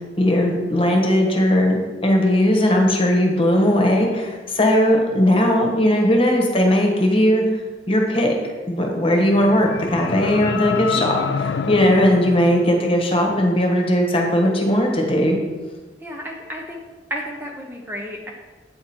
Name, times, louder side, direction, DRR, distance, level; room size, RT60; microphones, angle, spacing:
voice 1, 0.2-1.8 2.0-7.4 7.9-8.3 8.7-15.4, left 1 dB, 30° left, 1 dB, 1.3 m, -18 dB
sound 1, 9.3-13.4, left 5 dB, 70° left, 0.4 m, -28 dB
voice 2, 16.0-16.8 17.1-18.3, equal, 10° right, 0 dB, 0.7 m, -32 dB
8.7 x 6.0 x 4.4 m, 1.3 s
head